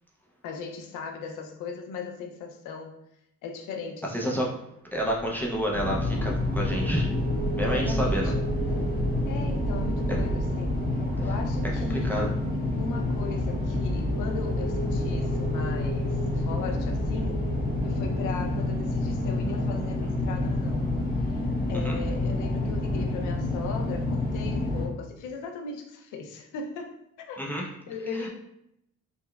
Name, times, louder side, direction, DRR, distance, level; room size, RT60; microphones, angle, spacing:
voice 1, 0.4-2.9 3.4-4.4 7.6-8.3 9.3-10.8 11.2-12.3 12.8-17.5 17.8-20.9 21.2-21.4 21.7-27.4 27.9-28.3, left 4 dB, 90° left, 3 dB, 0.5 m, -38 dB
voice 2, 4.1-4.5 4.9-7.1 7.5-8.3 10.1-10.2 11.9-12.3 21.7-22.0 27.4-27.7 28.1-28.3, equal, 5° left, -2 dB, 0.4 m, -29 dB
sound 1, 5.0-20.1, right 2 dB, 85° right, 0.6 m, -36 dB
sound 2, 5.7-24.9, left 2 dB, 30° left, 0.9 m, -28 dB
3.5 x 2.1 x 2.2 m, 0.79 s
cardioid pair, 90°, 30 cm